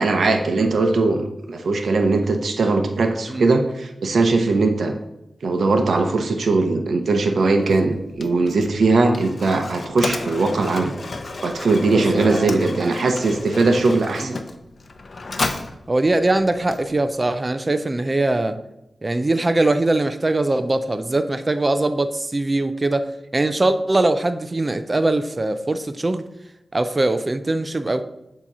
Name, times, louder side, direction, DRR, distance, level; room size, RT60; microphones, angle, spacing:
voice 1, 0.0-4.9 5.4-11.0 11.4-14.4, right 3 dB, 80° right, 0.6 m, -20 dB
Mechanisms, 7.6-17.3, left 3 dB, 55° left, 0.6 m, -33 dB
voice 2, 11.9-12.9 14.2-14.4 15.9-18.6 19.0-26.3 26.7-28.0, right 2 dB, 30° right, 0.4 m, -21 dB
7.3 x 2.9 x 5.3 m
wide cardioid pair, 70°, 0 cm